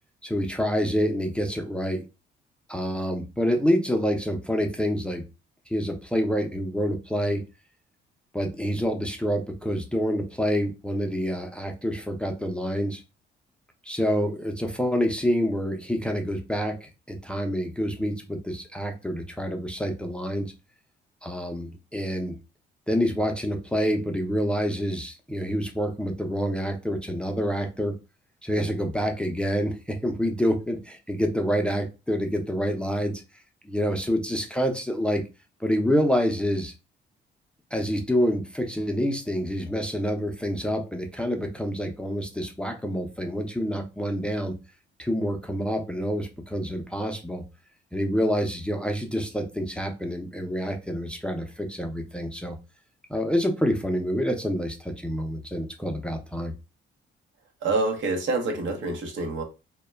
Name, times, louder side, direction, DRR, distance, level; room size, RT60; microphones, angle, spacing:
voice 1, 0.2-2.0 2.7-5.3 5.7-7.4 8.3-13.0 13.8-20.5 21.2-22.4 22.9-28.0 28.4-33.2 33.6-35.2 35.6-36.7 37.7-44.6 45.0-47.4 47.9-52.6 53.1-56.5, equal, 5° left, 0.4 m, -27 dB
voice 2, 57.6-59.4, right 3 dB, 70° right, 0.8 m, -27 dB
2.2 x 2.1 x 3.2 m
cardioid pair, 90°, 20 cm